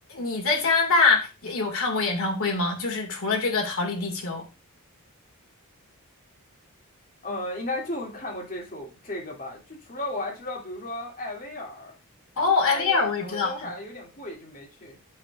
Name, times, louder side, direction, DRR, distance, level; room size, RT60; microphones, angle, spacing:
voice 1, 0.1-4.4 12.4-13.7, left 4 dB, 65° left, 1 dB, 2.1 m, -24 dB
voice 2, 7.2-11.9 12.6-15.0, left 1 dB, 40° left, -2 dB, 2.7 m, -35 dB
8.6 x 6.1 x 2.5 m, 0.29 s
head